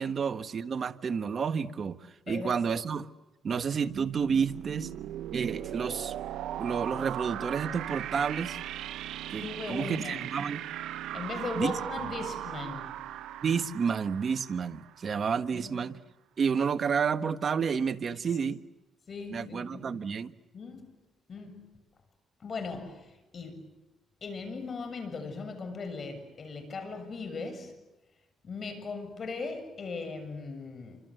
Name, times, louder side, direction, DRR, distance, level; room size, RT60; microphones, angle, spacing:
voice 1, 0.0-3.1 3.4-4.9 5.3-6.1 6.6-8.6 9.3-10.6 11.6-11.7 13.4-16.0 16.4-18.6 19.3-20.3, right 6 dB, 50° right, 1.4 m, -30 dB
voice 2, 2.3-2.6 9.4-10.2 11.1-12.9 15.5-15.8 18.1-18.2 19.1-19.9 20.5-20.9 21.3-21.6 22.4-23.6 24.2-27.7 28.4-31.0, left 4 dB, 45° left, 7.5 m, -38 dB
sound 1, 3.7-15.3, right 12 dB, 85° right, 0.9 m, -38 dB
28.0 x 26.0 x 7.9 m
cardioid pair, 90°, 0 cm